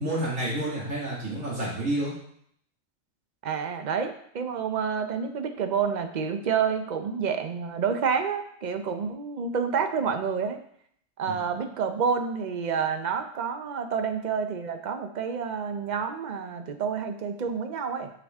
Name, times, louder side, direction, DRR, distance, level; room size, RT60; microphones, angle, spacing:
voice 1, 0.0-2.1 11.3-11.4, right 1 dB, 75° right, -5 dB, 2.6 m, -29 dB
voice 2, 3.4-10.6 11.2-18.1, right 6 dB, 45° right, 7 dB, 0.7 m, -29 dB
7.1 x 6.3 x 3.5 m, 0.66 s
omnidirectional pair, 1.3 m